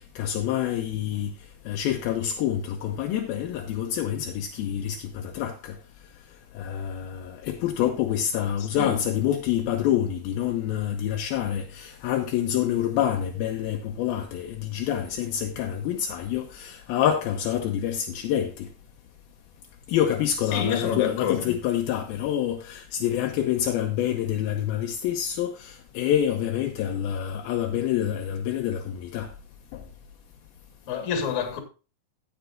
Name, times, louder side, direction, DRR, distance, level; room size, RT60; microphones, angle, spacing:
voice 1, 0.2-1.3 1.7-5.8 6.6-18.7 19.9-29.3 29.7-29.8, left 10 dB, 80° left, 2.5 m, -27 dB
voice 2, 20.5-21.6 30.9-31.6, left 7 dB, 55° left, 2.9 m, -27 dB
16.5 x 7.3 x 2.4 m
omnidirectional pair, 4.5 m